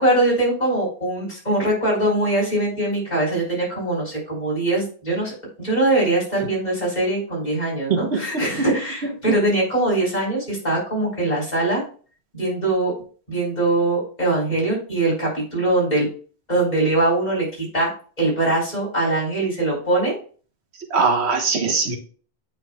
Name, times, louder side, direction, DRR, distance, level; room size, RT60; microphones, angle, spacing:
voice 1, 0.0-11.8 12.3-12.9 13.3-16.1 16.5-17.9 18.2-20.2, right 2 dB, 40° left, -5 dB, 3.8 m, -22 dB
voice 2, 7.9-8.7 9.3-9.4 20.9-22.0, right 4 dB, 80° right, 4 dB, 1.4 m, -21 dB
8.3 x 5.8 x 2.3 m, 0.40 s
omnidirectional pair, 1.1 m